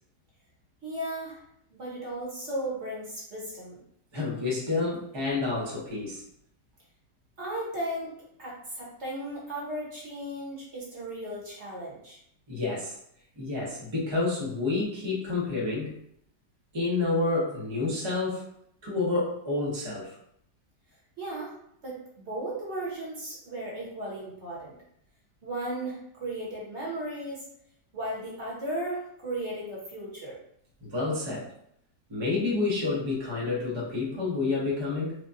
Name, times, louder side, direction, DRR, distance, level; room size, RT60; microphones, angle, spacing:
voice 1, 0.8-1.4 1.7-3.8 7.4-8.1 8.4-12.2 21.2-21.6 21.8-24.7 25.4-27.4 27.9-30.4, right 1 dB, 45° right, -5 dB, 1.2 m, -35 dB
voice 2, 4.1-6.2 12.5-13.0 13.4-15.9 16.7-18.4 18.8-20.2 30.8-31.5 32.1-35.2, left 3 dB, 25° right, -5 dB, 0.6 m, -29 dB
5.0 x 2.2 x 2.6 m, 0.70 s
omnidirectional pair, 2.0 m